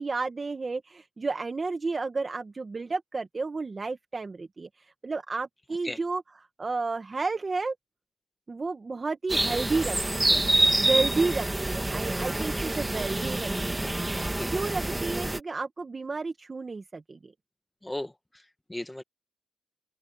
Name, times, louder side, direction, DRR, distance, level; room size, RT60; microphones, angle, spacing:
voice 1, 0.0-6.2 6.6-7.7 8.5-10.4 10.8-17.3, right 3 dB, 30° right, 1.4 m, -32 dB
sound 1, 9.3-15.4, right 1 dB, 10° right, 1.6 m, -27 dB
voice 2, 14.1-14.5 17.8-19.0, left 1 dB, 10° left, 1.2 m, -37 dB
cardioid pair, 100°, 0 cm